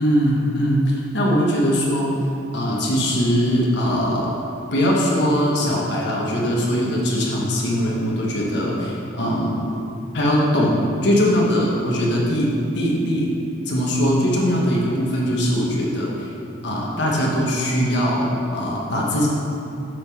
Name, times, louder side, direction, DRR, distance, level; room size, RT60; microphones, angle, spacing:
voice 1, 0.0-2.2 2.5-4.4 4.7-9.7 10.1-13.3 13.7-16.3 16.6-19.3, equal, 65° left, -3 dB, 1.3 m, -21 dB
7.5 x 3.9 x 6.2 m, 2.7 s
head